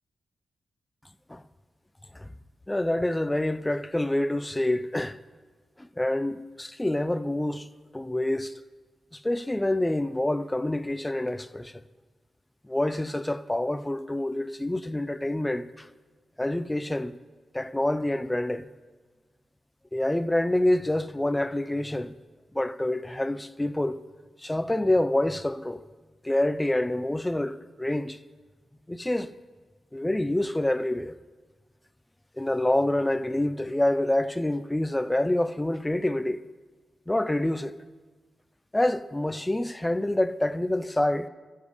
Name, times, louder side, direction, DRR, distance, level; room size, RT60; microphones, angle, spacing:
voice 1, 2.7-5.2 5.8-7.7 7.9-8.5 9.1-11.8 12.6-15.9 16.4-17.1 17.5-18.7 19.9-22.1 22.5-24.0 24.4-25.8 26.2-28.2 28.9-29.3 29.9-31.1 32.4-36.4 37.1-37.7 38.7-41.3, left 1 dB, 10° left, 0.4 m, -27 dB
14.0 x 7.2 x 4.9 m
wide cardioid pair, 140°, 0 cm